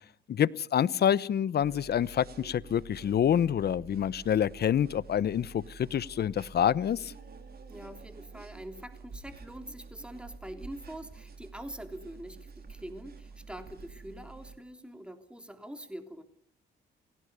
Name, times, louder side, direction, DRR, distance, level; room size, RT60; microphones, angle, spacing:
voice 1, 0.3-7.1, left 9 dB, 55° left, 20 dB, 0.9 m, -27 dB
sound 1, 1.6-14.6, right 4 dB, 50° right, 4.0 m, -49 dB
voice 2, 7.7-16.2, right 1 dB, 5° right, 8 dB, 3.3 m, -44 dB
28.0 x 17.5 x 6.9 m, 0.63 s
cardioid pair, 90°, 20 cm